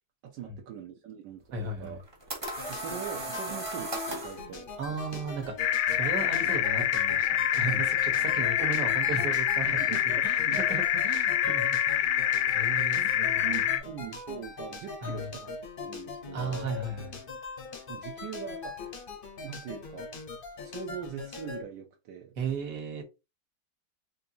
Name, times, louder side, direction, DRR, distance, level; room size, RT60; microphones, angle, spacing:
voice 1, 0.2-2.0 2.7-5.2 7.6-7.8 9.7-10.6 12.5-12.6 12.9-15.5 15.8-16.7 17.9-18.8 19.4-20.1 20.6-22.3, right 8 dB, 85° right, 1.3 m, -42 dB
voice 2, 1.5-2.0 4.8-9.8 10.0-12.1 12.5-13.5 15.0-15.3 16.3-17.2 22.4-23.0, right 3 dB, 65° right, 1.6 m, -35 dB
sound 1, 1.9-4.4, right 2 dB, 30° right, 0.4 m, -36 dB
sound 2, 2.4-21.6, left 4 dB, 55° left, 0.6 m, -41 dB
sound 3, 5.6-13.8, left 11 dB, 80° left, 1.2 m, -26 dB
4.3 x 2.6 x 2.7 m
omnidirectional pair, 1.9 m